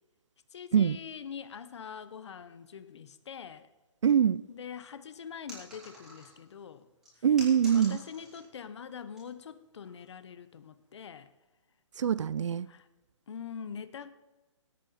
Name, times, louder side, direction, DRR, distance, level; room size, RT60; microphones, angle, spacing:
voice 1, 0.5-3.7 4.5-6.9 7.2-7.3 7.7-11.3 12.7-12.9 13.3-14.1, left 7 dB, 60° left, 0.9 m, -44 dB
voice 2, 4.0-4.4 7.2-8.0 12.0-12.7, right 8 dB, 70° right, 0.4 m, -24 dB
sound 1, 5.5-6.5 7.0-8.5 8.9-9.2 9.8-10.1, equal, 5° right, 3.9 m, -48 dB
17.5 x 8.5 x 4.3 m
hypercardioid pair, 155°, 16 cm